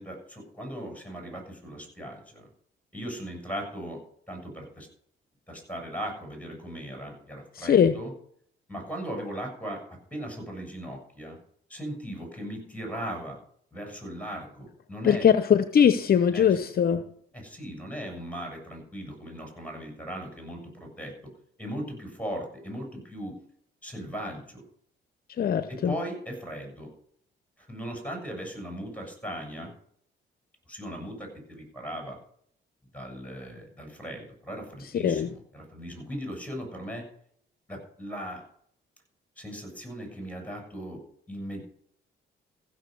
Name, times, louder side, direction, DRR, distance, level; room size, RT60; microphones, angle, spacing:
voice 1, 0.0-2.4 2.9-4.0 4.3-4.9 5.5-8.1 8.7-9.8 10.1-11.4 11.7-13.4 13.7-15.3 16.3-16.6 17.3-21.3 21.6-23.4 23.8-24.6 25.7-26.9 27.6-29.7 30.7-32.2 32.9-37.1 37.7-38.4 39.4-41.0 41.3-41.6, equal, 5° left, 1 dB, 7.5 m, -38 dB
voice 2, 7.6-7.9 15.0-17.0 25.4-25.9 34.9-35.3, left 8 dB, 50° left, 11 dB, 0.8 m, -21 dB
15.5 x 7.0 x 6.8 m, 0.64 s
cardioid pair, 90°, 20 cm